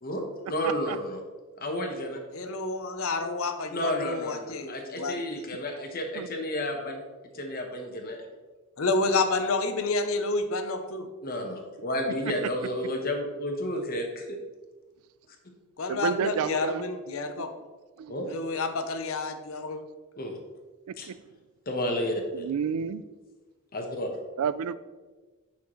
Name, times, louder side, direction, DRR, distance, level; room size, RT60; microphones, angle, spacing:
voice 1, 0.0-1.2 1.6-2.2 3.7-7.0 7.3-8.2 11.2-14.4 18.1-18.3 20.2-20.4 21.0-21.1 21.7-22.5 23.7-24.2, left 1 dB, 40° left, 3 dB, 1.1 m, -31 dB
voice 2, 0.6-1.0 6.1-6.3 12.2-12.3 15.9-16.9 17.6-17.7 18.0-18.2 20.9-21.2 22.3-23.0 24.4-24.7, right 7 dB, 80° right, 15 dB, 0.4 m, -30 dB
voice 3, 2.3-5.2 8.8-11.1 15.8-17.5 18.3-19.8, left 3 dB, 65° left, 7 dB, 0.7 m, -29 dB
8.7 x 5.8 x 3.1 m, 1.3 s
head